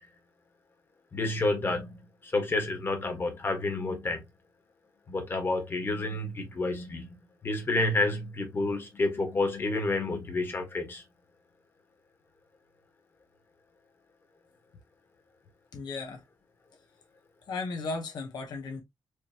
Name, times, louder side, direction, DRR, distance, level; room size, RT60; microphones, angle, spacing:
voice 1, 1.1-4.2 5.1-7.1 7.4-11.0, left 2 dB, 30° left, 1.4 m, -29 dB
voice 2, 15.7-16.2 17.5-18.8, left 3 dB, 70° left, 0.8 m, -35 dB
4.7 x 3.0 x 2.8 m
wide cardioid pair, 155°, 7 cm